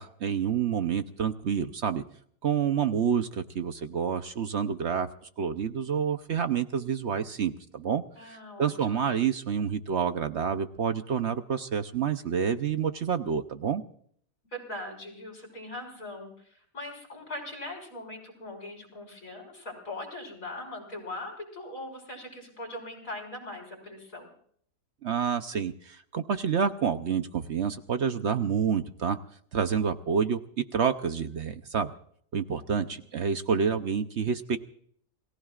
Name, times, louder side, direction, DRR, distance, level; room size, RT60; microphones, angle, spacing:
voice 1, 0.0-2.0 2.4-5.1 5.4-13.8 25.0-29.2 29.5-30.4 30.7-31.9 32.3-34.6, right 7 dB, 55° right, 9 dB, 1.0 m, -28 dB
voice 2, 8.2-8.7 14.5-24.3 32.7-33.0, left 1 dB, 65° left, 2 dB, 6.1 m, -40 dB
28.5 x 18.5 x 2.5 m, 0.62 s
omnidirectional pair, 1.5 m